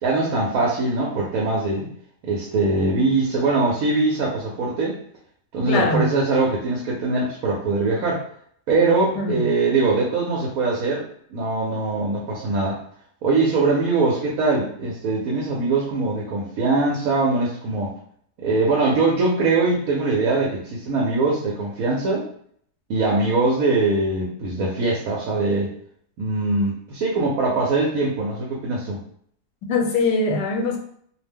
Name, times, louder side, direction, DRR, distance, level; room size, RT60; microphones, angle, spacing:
voice 1, 0.0-1.9 2.2-5.0 5.5-8.2 8.7-11.0 11.3-12.8 13.2-18.0 18.4-22.3 22.9-25.7 26.2-29.0, right 3 dB, 65° right, -3 dB, 1.0 m, -22 dB
voice 2, 5.7-6.1 9.1-9.5 29.7-30.8, left 2 dB, 85° left, 2 dB, 1.2 m, -22 dB
2.7 x 2.1 x 3.4 m, 0.62 s
omnidirectional pair, 1.7 m